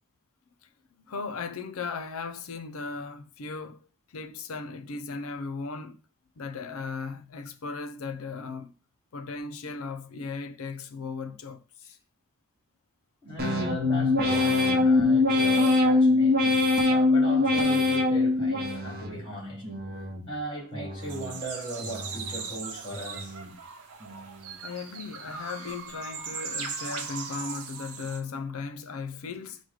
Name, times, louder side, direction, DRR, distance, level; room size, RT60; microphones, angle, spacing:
voice 1, 1.0-3.8 4.1-6.0 6.4-8.7 9.1-11.6 11.9-12.0 23.5-23.6 24.6-29.6, left 4 dB, 70° left, 0.5 m, -37 dB
voice 2, 13.2-19.7 20.3-23.4, right 1 dB, 25° left, 2.4 m, -38 dB
sound 1, 13.4-19.2 19.6-20.3 20.7-21.4 21.8-22.5 22.9-23.5 24.0-24.5, left 3 dB, 45° right, 0.8 m, -24 dB
sound 2, 21.0-28.2, right 5 dB, 75° right, 0.6 m, -39 dB
4.9 x 2.2 x 4.7 m
head